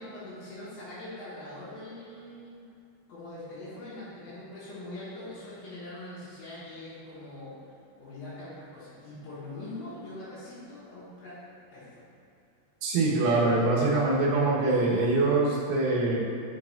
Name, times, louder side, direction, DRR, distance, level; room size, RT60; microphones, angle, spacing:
voice 1, 0.0-2.6 3.1-7.6 8.0-11.4 11.7-12.1 13.4-13.5 13.9-14.0, left 1 dB, 75° left, -11 dB, 3.3 m, -42 dB
voice 2, 12.8-16.2, right 2 dB, 70° right, -6 dB, 2.3 m, -24 dB
8.9 x 4.7 x 2.4 m, 2.6 s
omnidirectional pair, 5.5 m